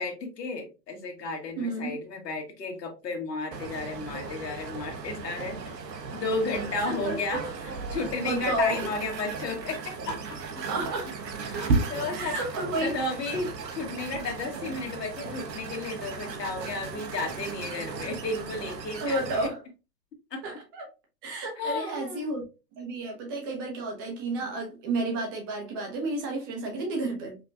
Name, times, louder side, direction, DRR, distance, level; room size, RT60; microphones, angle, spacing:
voice 1, 0.0-5.6 6.2-10.2 11.5-12.4 12.8-19.5 20.3-20.4 21.6-22.3, left 3 dB, 80° left, 1.5 m, -33 dB
voice 2, 1.6-2.0 6.7-7.2 8.2-9.0 10.6-11.1 11.5-12.9 19.0-19.6 20.4-20.8 21.2-22.4 22.8-27.4, right 2 dB, 15° right, 0.4 m, -31 dB
sound 1, 3.5-19.5, right 4 dB, 85° right, 1.0 m, -35 dB
5.2 x 2.2 x 2.6 m
hypercardioid pair, 140°, 49 cm